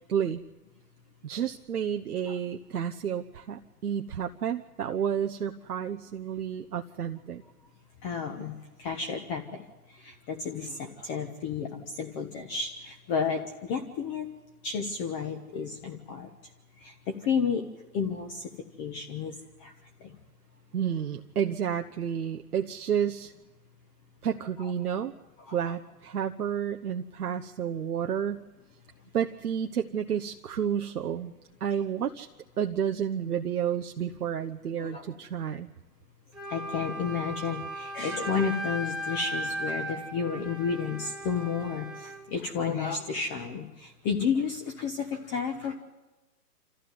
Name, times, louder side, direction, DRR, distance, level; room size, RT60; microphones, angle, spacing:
voice 1, 0.1-0.4 1.2-7.4 20.7-23.3 24.2-25.1 25.5-28.4 29.1-31.3 31.6-32.3 32.6-35.7, right 8 dB, 65° right, 5 dB, 1.1 m, -30 dB
voice 2, 8.0-14.3 14.6-16.3 16.8-17.7 17.9-18.5 18.8-20.2 24.6-25.1 25.4-25.8 34.8-35.0 36.5-45.7, left 6 dB, 20° left, 4 dB, 1.1 m, -32 dB
Wind instrument woodwind instrument, 36.3-42.2, right 1 dB, ahead, 2.0 m, -36 dB
26.5 x 14.5 x 9.5 m, 1.1 s
hypercardioid pair, 140°, 49 cm